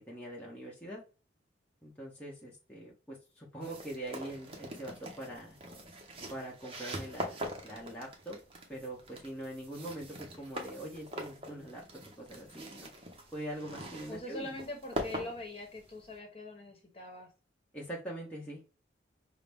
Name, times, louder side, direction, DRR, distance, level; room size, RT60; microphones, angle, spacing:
voice 1, 0.1-1.0 1.8-5.6 6.3-8.4 8.7-11.8 12.2-12.9 13.3-14.6 17.7-18.6, right 1 dB, 5° left, -4 dB, 0.8 m, -43 dB
sound 1, 3.6-16.1, right 1 dB, 30° right, 0.8 m, -43 dB
voice 2, 14.1-17.3, left 2 dB, 30° left, 2 dB, 1.0 m, -43 dB
5.5 x 2.1 x 3.4 m, 0.33 s
head